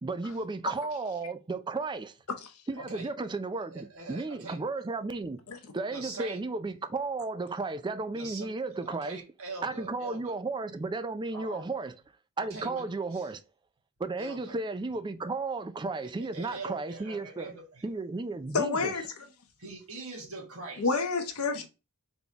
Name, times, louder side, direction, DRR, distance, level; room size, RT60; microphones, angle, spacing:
voice 1, 0.0-2.2 2.7-9.2 9.6-11.9 12.4-13.4 14.0-17.5 17.8-19.0, right 3 dB, 20° right, 0.4 m, -34 dB
voice 2, 2.8-3.1 3.7-4.6 5.9-6.4 8.1-8.5 8.8-10.3 11.3-11.7 12.4-12.8 13.1-13.3 14.2-14.6 16.0-17.8 19.6-21.0, right 3 dB, 70° right, 1.7 m, -42 dB
voice 3, 18.5-19.0 20.8-21.7, left 4 dB, 85° left, 0.9 m, -28 dB
4.0 x 3.5 x 2.8 m
head